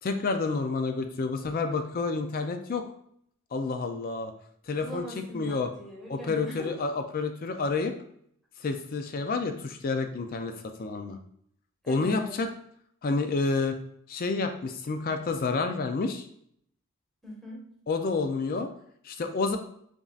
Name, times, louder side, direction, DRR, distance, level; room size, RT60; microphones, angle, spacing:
voice 1, 0.0-2.8 3.5-4.3 4.7-5.0 5.3-5.7 6.1-7.9 8.6-11.2 11.9-12.5 13.0-13.8 14.1-16.3 17.9-18.7 19.0-19.6, left 3 dB, 45° left, 7 dB, 0.4 m, -29 dB
voice 2, 4.8-6.7 11.8-12.3 17.2-17.6, equal, ahead, -5 dB, 1.4 m, -41 dB
7.0 x 2.6 x 2.4 m, 0.68 s
head